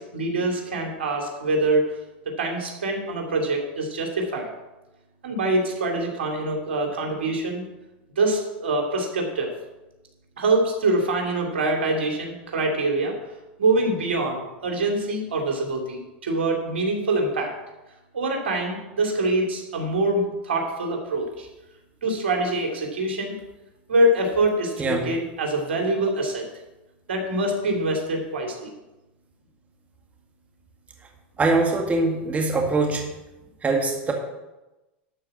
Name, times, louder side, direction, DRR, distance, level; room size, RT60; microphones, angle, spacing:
voice 1, 0.0-1.9 2.2-4.5 5.2-7.6 8.2-9.5 10.4-13.1 13.6-17.5 18.1-21.5 22.0-23.3 23.9-26.4 27.1-28.7, right 2 dB, 85° right, 2 dB, 2.7 m, -24 dB
voice 2, 31.4-33.0 33.6-34.1, right 3 dB, 25° right, 2 dB, 1.9 m, -22 dB
12.0 x 4.8 x 7.6 m, 1.0 s
hypercardioid pair, 100°, 6 cm